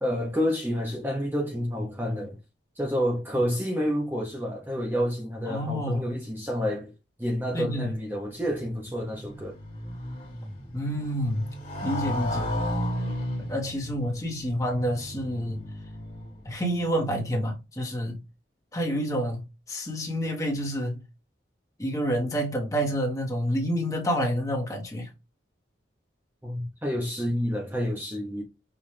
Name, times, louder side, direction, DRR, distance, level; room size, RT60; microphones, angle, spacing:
voice 1, 0.0-2.4 2.8-6.9 7.2-9.6 26.4-28.4, equal, 10° right, 0.7 m, -29 dB
voice 2, 5.5-6.0 7.5-7.9 10.7-11.5 11.8-12.5 13.4-15.6 16.4-18.2 18.7-21.0 21.8-25.1, equal, 15° left, 1.1 m, -28 dB
Motorcycle, 8.5-16.6, equal, 45° left, 1.8 m, -34 dB
5.8 x 2.5 x 3.2 m
head